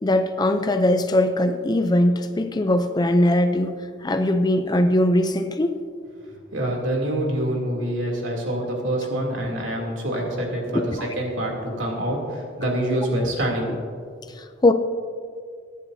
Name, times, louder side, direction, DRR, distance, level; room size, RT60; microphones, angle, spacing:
voice 1, 0.0-5.7 10.7-11.1 14.4-14.7, left 1 dB, 20° left, 8 dB, 0.5 m, -21 dB
voice 2, 6.5-13.7, right 1 dB, 75° right, -1 dB, 2.9 m, -26 dB
23.5 x 10.0 x 2.7 m, 2.2 s
head